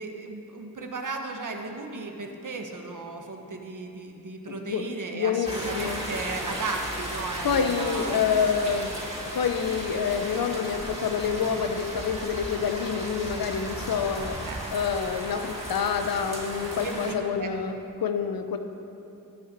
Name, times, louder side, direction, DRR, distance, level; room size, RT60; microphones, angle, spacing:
voice 1, 0.0-8.3 8.6-8.8 14.3-14.6 16.8-17.5, right 3 dB, 65° right, 3 dB, 1.3 m, -35 dB
voice 2, 4.5-4.9 5.1-6.1 7.4-8.9 9.3-14.4 14.7-18.6, left 6 dB, 90° left, 7 dB, 0.8 m, -27 dB
sound 1, 5.4-17.1, right 1 dB, 20° right, 2.8 m, -35 dB
14.5 x 5.9 x 6.7 m, 2.8 s
cardioid pair, 40°, 34 cm